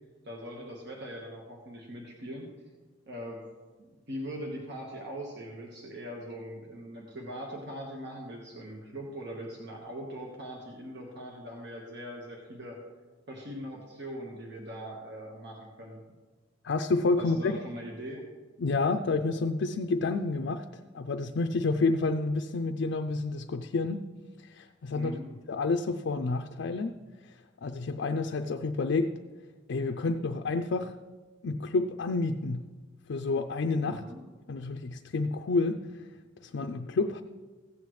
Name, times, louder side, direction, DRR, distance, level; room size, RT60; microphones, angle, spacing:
voice 1, 0.2-2.5 3.0-3.4 3.8-12.8 13.3-16.0 17.2-18.2 24.9-25.3 33.8-34.2, equal, 65° right, -1 dB, 1.4 m, -41 dB
voice 2, 16.6-17.6 18.6-20.6 20.9-24.0 24.4-25.2 25.5-27.0 27.6-29.1 29.7-30.9 31.4-32.7 33.1-34.0 34.5-36.1 36.4-37.2, left 3 dB, 65° left, 5 dB, 0.4 m, -29 dB
15.5 x 8.4 x 3.2 m, 1.3 s
head